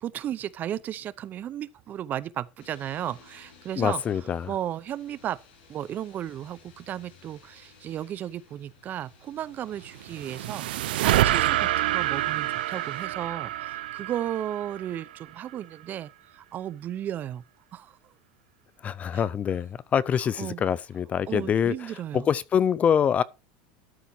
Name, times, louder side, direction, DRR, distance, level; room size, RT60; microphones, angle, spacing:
voice 1, 0.0-4.0 4.5-5.4 5.7-17.4 17.7-18.0 19.1-19.2 20.4-20.6 21.3-22.3, right 11 dB, 35° right, 0.6 m, -34 dB
sound 1, 2.6-13.1, left 5 dB, 80° left, 6.6 m, -55 dB
voice 2, 3.8-4.5 18.8-21.7 22.1-23.2, left 8 dB, 30° left, 0.5 m, -25 dB
sound 2, 9.8-15.2, right 15 dB, 90° right, 0.6 m, -27 dB
12.5 x 5.1 x 4.5 m
supercardioid pair, 125°, 5 cm